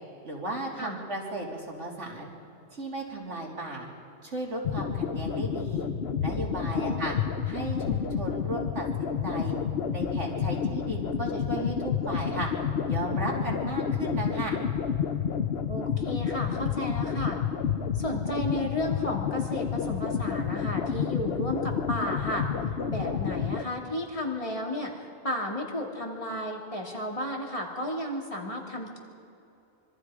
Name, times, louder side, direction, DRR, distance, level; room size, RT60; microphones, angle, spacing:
voice 1, 0.2-2.3 2.7-3.9 4.2-5.9 6.2-7.2 7.5-9.6 9.9-12.5 12.9-14.6, right 2 dB, 80° right, -2 dB, 3.7 m, -35 dB
sound 1, 4.6-23.6, left 7 dB, 60° left, 1.0 m, -30 dB
voice 2, 6.7-7.1 15.7-17.4 17.9-22.5 22.9-29.0, left 1 dB, 30° left, -1 dB, 2.9 m, -33 dB
25.5 x 25.0 x 5.0 m, 2.7 s
omnidirectional pair, 1.2 m